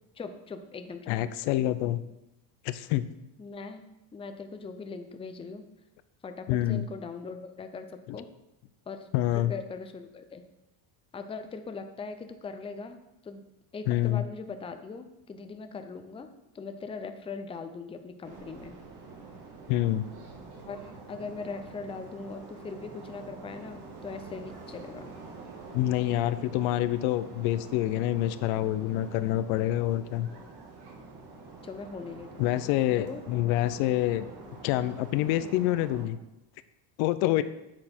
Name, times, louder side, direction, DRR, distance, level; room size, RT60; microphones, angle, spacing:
voice 1, 0.1-1.1 3.4-3.8 4.1-5.6 6.2-8.3 8.9-9.1 9.3-10.5 11.1-13.4 13.7-16.3 16.5-18.8 20.7-25.1 30.3-30.5 31.6-32.6 33.0-33.2 35.4-35.5, left 4 dB, 10° left, 8 dB, 0.5 m, -40 dB
voice 2, 1.1-2.0 2.6-3.1 6.5-6.8 8.1-8.2 9.1-9.5 13.9-14.2 19.7-20.0 25.7-30.3 32.4-34.3 34.6-36.2 37.0-37.4, left 14 dB, 75° left, 13 dB, 0.6 m, -27 dB
sound 1, 18.2-36.0, right 3 dB, 50° right, 1.7 m, -46 dB
7.7 x 4.2 x 4.4 m, 0.90 s
supercardioid pair, 95°, 50 cm